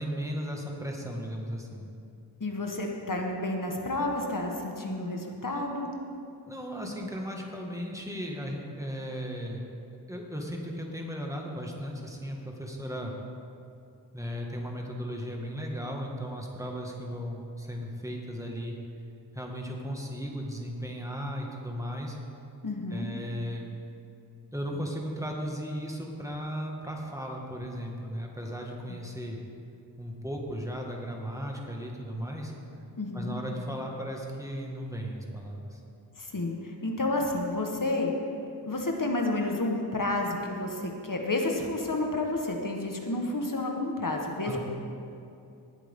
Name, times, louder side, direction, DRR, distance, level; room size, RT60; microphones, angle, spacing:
voice 1, 0.0-1.9 6.4-9.7 10.1-13.1 14.1-18.7 19.3-22.2 22.9-23.7 24.5-29.4 30.0-32.5 33.1-35.8 44.4-44.6, equal, 5° right, 0 dB, 1.8 m, -36 dB
voice 2, 2.4-5.9 22.6-23.1 28.9-29.0 33.0-33.4 36.2-38.1 38.6-44.6, left 2 dB, 50° left, 1 dB, 1.4 m, -30 dB
18.5 x 8.3 x 3.7 m, 2.6 s
wide cardioid pair, 55°, 42 cm